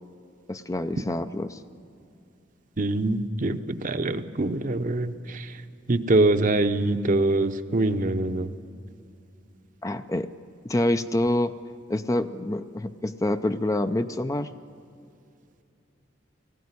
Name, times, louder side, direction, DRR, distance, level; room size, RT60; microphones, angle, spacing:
voice 1, 0.5-1.6 9.8-10.3 10.6-11.5 11.9-14.5, left 1 dB, 15° left, 9 dB, 0.5 m, -26 dB
voice 2, 2.8-5.5 5.9-8.5, right 2 dB, 45° right, 9 dB, 0.8 m, -24 dB
18.5 x 15.5 x 9.6 m, 2.5 s
head